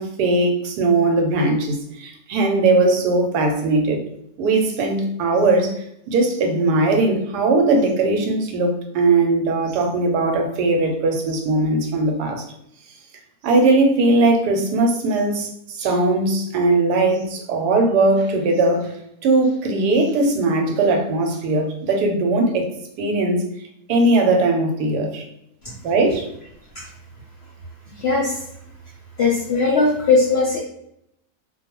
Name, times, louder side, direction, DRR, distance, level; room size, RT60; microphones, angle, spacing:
voice 1, 0.0-4.0 4.4-12.4 13.4-18.9 19.2-22.7 23.0-23.4 23.9-25.2 25.8-26.2, right 2 dB, 90° right, 3 dB, 1.2 m, -19 dB
voice 2, 28.0-28.4 29.2-30.6, left 4 dB, 75° left, -4 dB, 0.6 m, -18 dB
2.5 x 2.2 x 2.8 m, 0.76 s
omnidirectional pair, 1.7 m